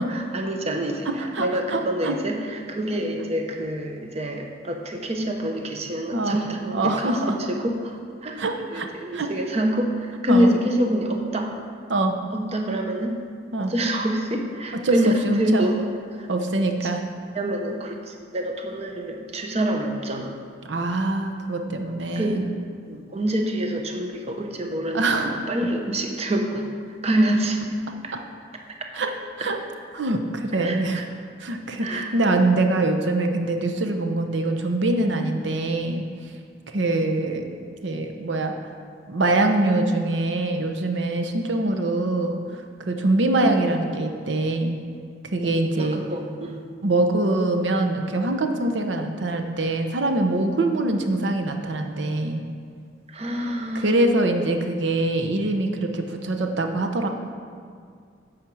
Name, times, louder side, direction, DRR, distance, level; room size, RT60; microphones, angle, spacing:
voice 1, 0.0-8.4 8.7-11.5 12.3-13.2 13.6-16.3 16.8-16.9 17.3-20.3 22.2-22.5 22.9-26.7 27.0-27.7 28.0-28.2 30.6-31.0 31.8-32.1 45.5-46.6 53.1-53.9, right 1 dB, 35° right, 3 dB, 0.8 m, -26 dB
voice 2, 1.1-2.2 6.1-6.4 6.7-7.5 8.4-9.3 10.3-10.5 11.9-12.1 13.5-13.7 14.8-15.6 16.3-17.0 20.7-22.5 24.9-25.3 28.9-29.1 29.4-29.6 29.9-31.0 31.4-36.0 36.7-37.5 37.8-38.5 39.1-42.4 42.8-44.8 45.3-46.0 46.8-52.4 53.8-57.1, right 2 dB, 75° right, 4 dB, 0.8 m, -24 dB
8.8 x 5.0 x 6.1 m, 2.1 s
head